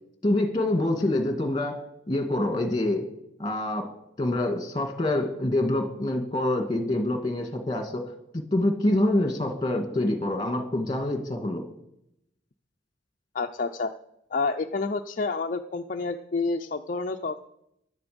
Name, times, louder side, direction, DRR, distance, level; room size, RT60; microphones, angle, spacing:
voice 1, 0.2-3.1 3.4-3.9 4.2-8.0 8.3-11.6, left 1 dB, 20° left, 5 dB, 2.2 m, -26 dB
voice 2, 13.3-13.9 14.3-17.4, left 3 dB, 45° left, 4 dB, 0.5 m, -29 dB
16.5 x 11.5 x 5.2 m, 0.80 s
head